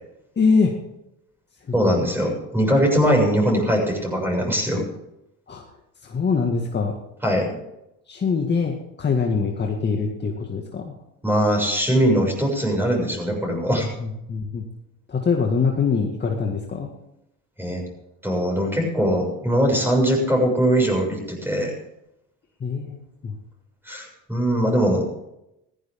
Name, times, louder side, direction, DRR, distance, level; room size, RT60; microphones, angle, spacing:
voice 1, 0.4-0.7 1.7-1.9 5.5-5.6 6.0-6.9 8.1-10.9 13.8-14.6 15.1-16.9 22.6-23.3, left 5 dB, 30° left, 1 dB, 2.1 m, -23 dB
voice 2, 1.7-4.8 7.2-7.6 11.2-13.9 17.6-17.8 18.2-21.7 23.8-25.0, equal, 5° right, 0 dB, 6.7 m, -21 dB
16.0 x 15.0 x 3.8 m, 0.85 s
supercardioid pair, 95°, 33 cm